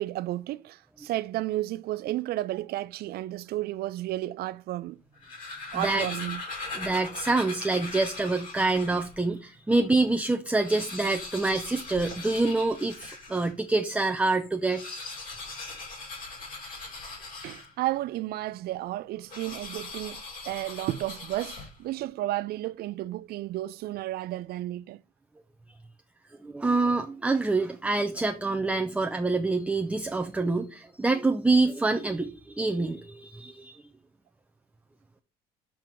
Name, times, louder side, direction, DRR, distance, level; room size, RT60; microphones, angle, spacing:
voice 1, 0.0-5.0 5.7-6.4 17.4-25.0, right 15 dB, 65° right, 0.4 m, -32 dB
sound 1, 5.0-9.2 9.7-9.8 10.0-10.1 10.5-13.6 14.5-18.0 19.3-22.0, left 3 dB, 55° left, 3.0 m, -40 dB
voice 2, 5.7-6.1 6.7-14.8 26.4-33.8, right 3 dB, 5° right, 0.5 m, -26 dB
7.6 x 2.9 x 5.0 m
cardioid pair, 110°, 17 cm